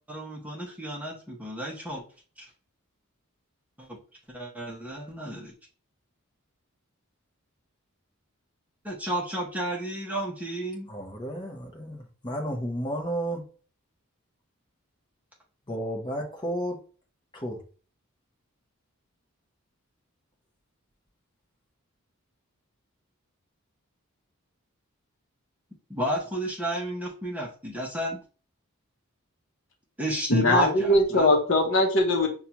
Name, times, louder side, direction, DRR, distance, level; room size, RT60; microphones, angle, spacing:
voice 1, 0.1-2.0 2.4-2.5 3.8-4.0 4.3-5.5 8.8-10.9 25.9-28.2 30.0-31.3, right 1 dB, 5° right, -2 dB, 0.7 m, -32 dB
voice 2, 10.9-13.4 15.7-16.8 17.3-17.6, equal, 20° left, 1 dB, 0.8 m, -32 dB
voice 3, 30.3-32.3, left 1 dB, 60° left, 3 dB, 0.8 m, -21 dB
5.6 x 2.3 x 2.8 m, 0.38 s
head